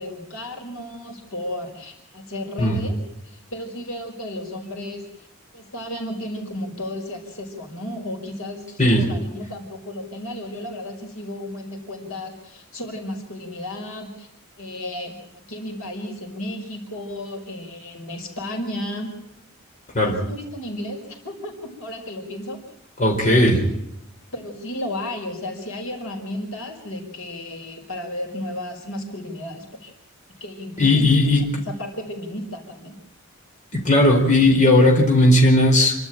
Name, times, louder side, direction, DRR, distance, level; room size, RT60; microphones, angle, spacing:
voice 1, 0.0-3.0 3.2-5.3 5.5-14.3 14.6-19.1 20.0-22.6 23.4-23.8 24.3-29.9 30.4-31.3 31.6-33.0, left 1 dB, 75° left, 2 dB, 5.3 m, -33 dB
voice 2, 23.0-23.6 30.8-31.4 33.8-35.9, left 1 dB, 35° left, 0 dB, 4.7 m, -16 dB
28.0 x 12.5 x 9.1 m, 0.81 s
head